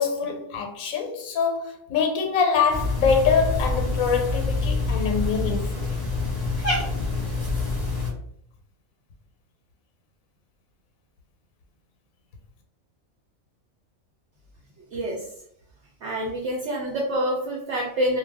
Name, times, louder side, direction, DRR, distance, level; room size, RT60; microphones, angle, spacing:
voice 1, 0.0-5.9, left 6 dB, 85° left, 1.0 m, -24 dB
Cat, 2.7-8.1, left 3 dB, 20° left, 0.9 m, -26 dB
voice 2, 14.9-15.3 16.0-18.2, right 1 dB, 65° right, 0.8 m, -27 dB
2.4 x 2.2 x 3.3 m
omnidirectional pair, 1.4 m